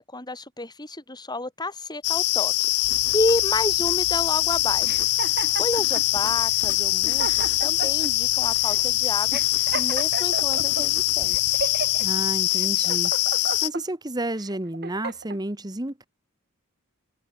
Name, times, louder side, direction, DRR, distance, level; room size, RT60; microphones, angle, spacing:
voice 1, 0.0-2.5 2.8-5.1 5.5-9.4 9.7-11.6, left 2 dB, 20° left, 4.8 m, -30 dB
sound 1, 2.0-13.7, left 17 dB, 80° left, 0.5 m, -23 dB
Writing, 2.8-12.4, left 2 dB, 55° left, 3.9 m, -44 dB
sound 2, 4.8-6.1 6.7-6.8 7.0-8.1 8.7-8.8 9.3-10.8 11.3-12.0 12.6-13.8 14.4-15.4, right 4 dB, 45° right, 2.9 m, -33 dB
voice 2, 12.0-16.1, right 1 dB, 20° right, 1.4 m, -31 dB
head